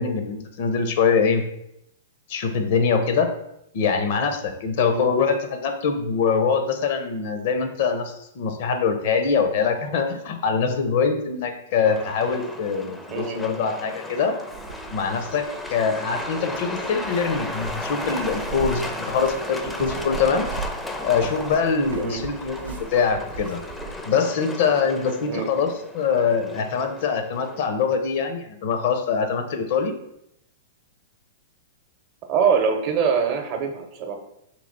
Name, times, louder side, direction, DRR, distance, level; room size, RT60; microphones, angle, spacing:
voice 1, 0.0-1.4 2.3-3.3 3.7-14.4 14.9-20.5 21.0-23.6 24.1-29.9, left 5 dB, 60° left, 7 dB, 0.6 m, -23 dB
Truck, 11.8-27.7, left 1 dB, 5° left, 0.4 m, -35 dB
sound 1, 14.5-24.0, right 5 dB, 80° right, 0.5 m, -39 dB
voice 2, 32.3-34.2, right 6 dB, 45° right, 4 dB, 0.7 m, -23 dB
3.0 x 2.9 x 4.0 m, 0.78 s
hypercardioid pair, 115°, 0 cm